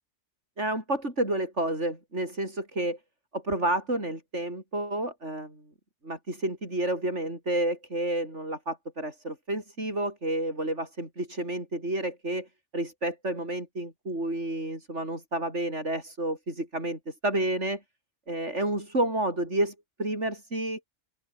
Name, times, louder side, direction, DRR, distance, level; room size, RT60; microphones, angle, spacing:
voice 1, 0.6-3.0 3.3-5.6 6.0-12.5 12.7-17.8 18.3-20.9, right 1 dB, 85° right, 8.3 m, -30 dB
open air
omnidirectional pair, 1.2 m